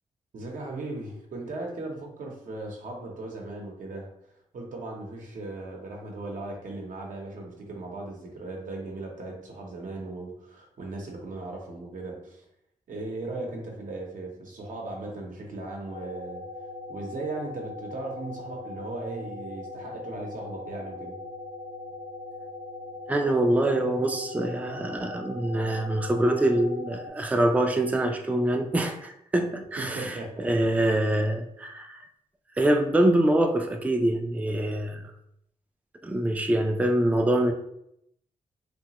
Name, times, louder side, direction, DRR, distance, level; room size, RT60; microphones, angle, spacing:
voice 1, 0.3-4.1 4.5-12.4 12.9-16.4 16.9-21.2 29.8-30.5, right 2 dB, 70° right, 0 dB, 0.8 m, -37 dB
sound 1, 15.9-27.1, left 2 dB, 85° left, 0.6 m, -40 dB
voice 2, 23.1-32.0 32.6-35.0 36.0-37.5, right 1 dB, 10° right, 4 dB, 0.4 m, -25 dB
2.7 x 2.3 x 2.9 m, 0.76 s
cardioid pair, 55°, 14 cm